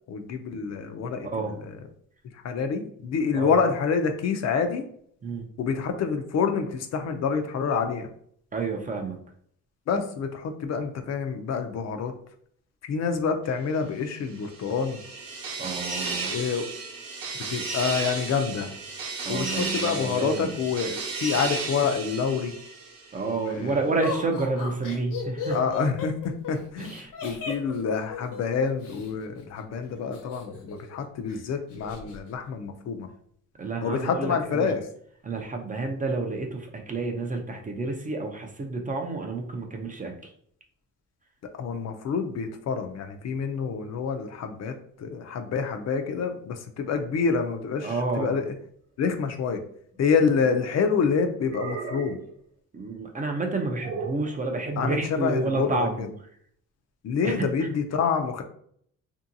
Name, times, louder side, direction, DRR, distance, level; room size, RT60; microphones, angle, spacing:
voice 1, 0.1-1.8 2.4-4.9 5.6-8.1 9.9-12.1 12.9-15.0 16.3-16.7 17.5-18.7 19.3-22.5 23.2-23.8 25.5-27.0 27.2-33.1 33.8-34.9 41.6-48.5 49.0-49.6 50.0-52.2 54.8-56.1 57.0-58.4, left 5 dB, 50° left, 6 dB, 0.4 m, -27 dB
voice 2, 1.2-1.5 3.3-3.5 5.2-5.5 8.5-9.2 15.6-16.3 19.3-20.5 23.1-25.6 26.8-27.1 33.6-34.7 35.2-40.3 47.8-48.3 52.7-56.1 57.2-57.7, right 3 dB, 25° right, 3 dB, 0.4 m, -30 dB
sound 1, 14.2-23.3, right 4 dB, 80° right, 0.8 m, -34 dB
Laughter, 24.0-29.1 30.1-31.0 31.3-31.4 31.7-32.2, left 4 dB, 70° left, 0.9 m, -36 dB
sound 2, 49.9-50.7 51.5-52.3 53.8-54.3, right 4 dB, 50° right, 0.9 m, -36 dB
2.7 x 2.6 x 2.6 m, 0.63 s
cardioid pair, 140°, 33 cm